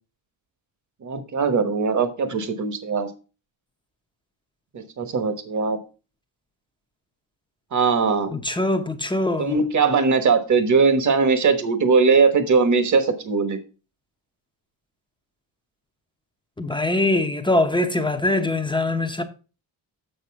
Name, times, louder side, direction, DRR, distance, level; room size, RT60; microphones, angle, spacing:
voice 1, 1.0-3.1 4.7-5.8 7.7-8.3 9.4-13.6, right 5 dB, 40° right, 1.2 m, -20 dB
voice 2, 8.3-9.6 16.6-19.2, left 2 dB, 10° left, 0.7 m, -22 dB
6.8 x 6.5 x 4.6 m
cardioid pair, 135°, 47 cm